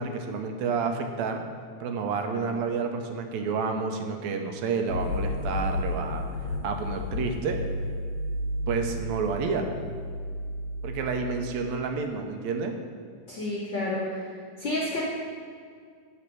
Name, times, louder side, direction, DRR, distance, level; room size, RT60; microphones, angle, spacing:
voice 1, 0.0-1.4 1.8-6.2 6.6-7.6 8.7-9.7 10.8-12.8, right 5 dB, 75° right, 5 dB, 1.8 m, -29 dB
sound 1, 4.9-11.7, left 1 dB, 50° right, 1.9 m, -32 dB
voice 2, 13.3-14.3 14.6-15.0, left 1 dB, 60° left, -6 dB, 1.2 m, -30 dB
10.0 x 4.1 x 6.0 m, 2.1 s
omnidirectional pair, 3.6 m